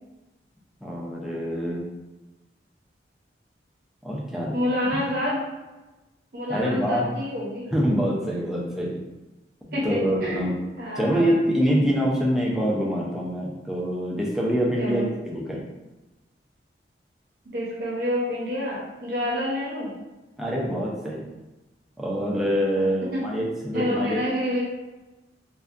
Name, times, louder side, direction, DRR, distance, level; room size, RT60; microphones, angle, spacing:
voice 1, 0.8-1.8 4.0-4.5 6.5-7.1 7.7-8.9 9.8-10.6 11.0-15.6 20.4-21.2 22.0-24.2, equal, ahead, -4 dB, 0.4 m, -25 dB
voice 2, 4.5-5.4 6.3-7.6 9.7-10.5 10.8-11.6 14.8-15.1 17.5-19.9 22.6-22.9 23.1-23.2 23.7-24.6, left 1 dB, 55° right, -5 dB, 0.6 m, -28 dB
2.6 x 2.1 x 2.3 m, 1.1 s
head